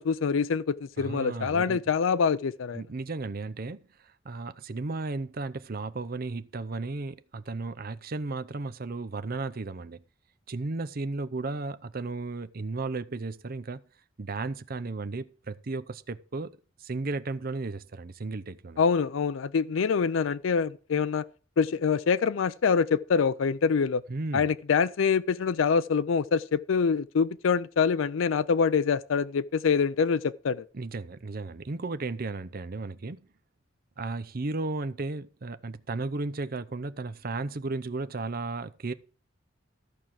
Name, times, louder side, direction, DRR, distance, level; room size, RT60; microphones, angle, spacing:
voice 1, 0.0-2.8 18.8-21.2 21.6-24.0 24.3-30.7, left 6 dB, 80° left, 0.4 m, -25 dB
voice 2, 1.0-1.8 2.7-10.0 10.5-13.8 14.2-16.5 16.8-18.8 24.1-24.5 30.7-33.3 34.0-38.9, right 3 dB, 50° right, 0.7 m, -34 dB
13.5 x 4.7 x 7.4 m
head